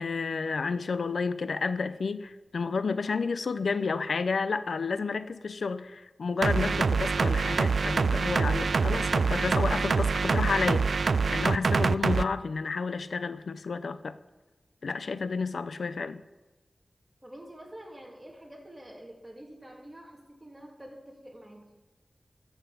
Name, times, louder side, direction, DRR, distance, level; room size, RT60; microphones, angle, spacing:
voice 1, 0.0-14.1 14.8-16.2, left 4 dB, 90° left, 12 dB, 0.5 m, -31 dB
sound 1, 6.4-12.2, right 4 dB, 80° right, 0.3 m, -25 dB
voice 2, 17.2-21.8, right 1 dB, 20° right, -1 dB, 2.8 m, -47 dB
13.5 x 5.6 x 7.1 m, 1.2 s
wide cardioid pair, 65°, 0 cm